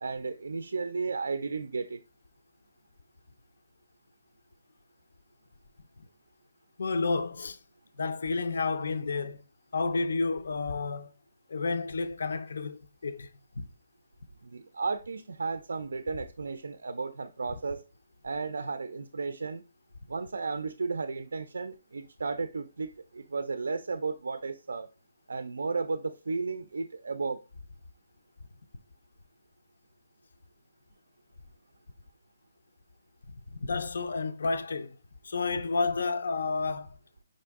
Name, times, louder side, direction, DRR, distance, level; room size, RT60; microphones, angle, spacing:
voice 1, 0.0-2.0 14.4-17.8 18.2-19.6 20.1-24.9 25.3-27.4, right 4 dB, 85° right, 0.4 m, -34 dB
voice 2, 6.8-7.6 8.0-9.4 9.7-11.1 11.5-13.3 13.6-13.7 33.5-35.0 35.2-37.0, left 4 dB, 55° left, 0.4 m, -30 dB
5.2 x 2.6 x 3.5 m
hypercardioid pair, 180°, 0 cm